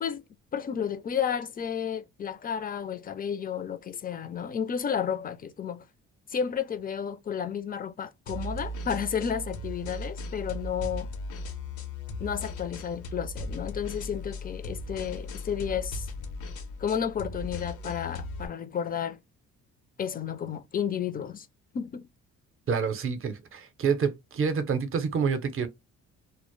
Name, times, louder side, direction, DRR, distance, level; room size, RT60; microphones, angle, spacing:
voice 1, 0.5-5.8 6.3-11.1 12.2-16.1 16.8-19.2 20.0-21.5 21.7-22.1, left 8 dB, 30° left, 0.4 m, -32 dB
sound 1, 8.3-18.5, left 1 dB, 85° left, 0.7 m, -37 dB
voice 2, 22.7-25.7, right 6 dB, 45° right, 0.6 m, -28 dB
2.0 x 2.0 x 3.0 m
cardioid pair, 90°, 30 cm